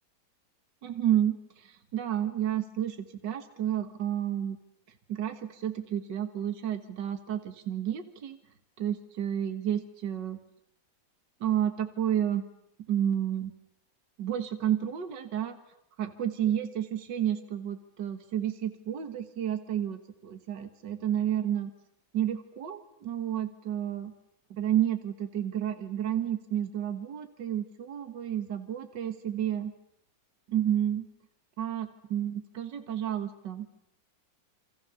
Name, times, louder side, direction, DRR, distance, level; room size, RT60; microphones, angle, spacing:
voice 1, 0.8-1.4 1.9-3.0 3.2-4.6 5.1-8.4 8.8-10.4 11.4-12.4 12.9-13.5 14.2-15.6 16.0-21.7 22.1-24.1 24.5-29.7 30.5-31.1 31.6-33.7, right 10 dB, 70° right, 8 dB, 2.2 m, -30 dB
29.0 x 25.5 x 7.0 m, 0.75 s
omnidirectional pair, 2.0 m